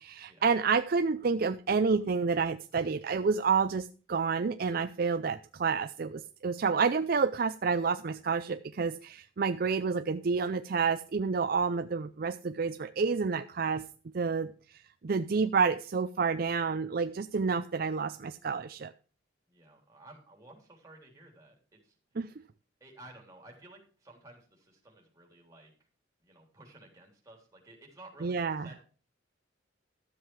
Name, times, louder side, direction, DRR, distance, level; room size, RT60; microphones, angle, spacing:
voice 1, 0.0-13.9 14.1-18.9 22.2-22.3 28.2-28.7, right 5 dB, 50° right, 11 dB, 0.4 m, -29 dB
voice 2, 19.5-21.9 22.8-25.7 26.2-28.9, right 2 dB, 15° right, 0 dB, 3.5 m, -54 dB
13.0 x 7.6 x 4.7 m, 0.39 s
head